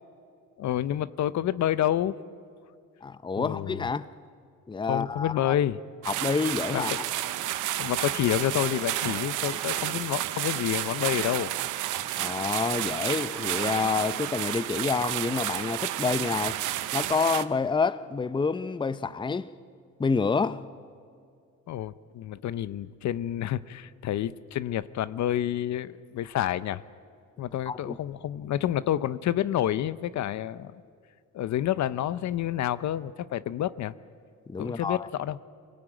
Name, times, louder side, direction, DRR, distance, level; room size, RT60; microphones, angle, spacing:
voice 1, 0.6-2.2 3.4-3.8 4.9-5.8 6.7-6.8 7.8-11.5 21.7-26.8 27.4-30.8 31.3-33.9 34.6-35.4, left 12 dB, 65° left, 0.7 m, -29 dB
voice 2, 3.0-4.1 4.7-5.5 6.1-7.0 12.2-16.6 16.9-19.5 20.0-20.6 27.7-28.0 34.5-35.1, left 4 dB, 15° left, 0.6 m, -28 dB
sound 1, 6.0-17.5, right 13 dB, 90° right, 0.8 m, -31 dB
23.5 x 17.5 x 9.0 m
cardioid pair, 90°, 30 cm